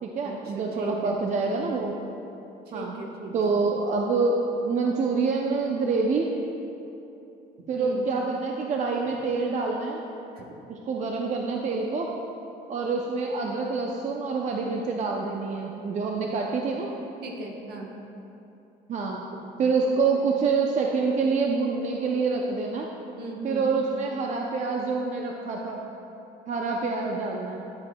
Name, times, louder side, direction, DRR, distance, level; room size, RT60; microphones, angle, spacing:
voice 1, 0.0-2.0 2.7-2.9 3.3-4.4 4.7-6.3 7.7-10.0 10.7-12.1 12.7-16.9 18.9-19.2 19.6-22.9 23.4-25.8 26.5-27.6, right 4 dB, 45° right, 0 dB, 0.6 m, -26 dB
voice 2, 0.8-1.2 2.7-3.6 7.8-8.1 10.3-10.4 17.2-17.9 23.2-23.8, right 2 dB, 70° right, 0 dB, 1.2 m, -37 dB
10.0 x 7.6 x 2.3 m, 2.9 s
cardioid pair, 110°, 17 cm